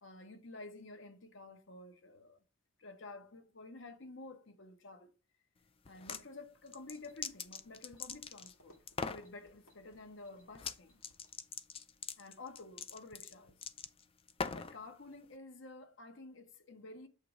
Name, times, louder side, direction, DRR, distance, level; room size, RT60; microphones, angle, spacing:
voice 1, 0.0-2.4 2.8-5.2 5.8-8.8 9.1-11.0 12.2-13.6 14.5-17.1, left 2 dB, 60° left, 0.9 m, -51 dB
sound 1, 5.8-6.2 6.7-8.5 8.9-9.3 10.5-10.8 11.0-14.8, left 5 dB, 25° left, 0.4 m, -42 dB
sound 2, 6.7-11.6, equal, 85° left, 2.3 m, -69 dB
7.6 x 3.0 x 4.9 m
head